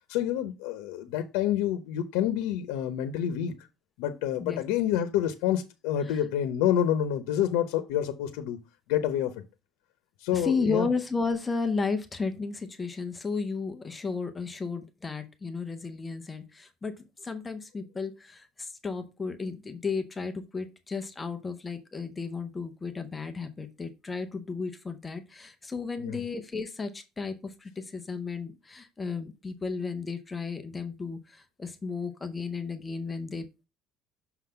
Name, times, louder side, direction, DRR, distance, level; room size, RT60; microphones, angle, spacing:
voice 1, 0.1-3.5 4.0-8.6 8.9-9.3 10.2-10.9 26.0-26.2, left 10 dB, 85° left, 0.8 m, -28 dB
voice 2, 10.3-16.9 17.2-33.5, left 4 dB, 10° left, 0.6 m, -33 dB
6.1 x 3.9 x 5.6 m
cardioid pair, 180°, 0 cm